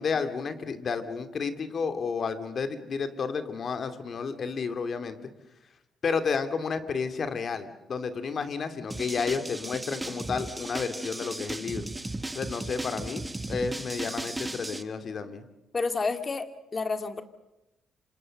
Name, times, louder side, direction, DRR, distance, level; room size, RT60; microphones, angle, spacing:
voice 1, 0.0-5.2 6.0-11.9 12.3-15.4, left 5 dB, 50° left, 9 dB, 2.8 m, -31 dB
sound 1, 8.9-14.8, right 2 dB, 15° right, 1.5 m, -36 dB
voice 2, 15.7-16.5 16.7-17.2, left 4 dB, 35° left, 9 dB, 2.4 m, -29 dB
27.0 x 27.0 x 6.6 m, 0.92 s
cardioid pair, 90°, 0 cm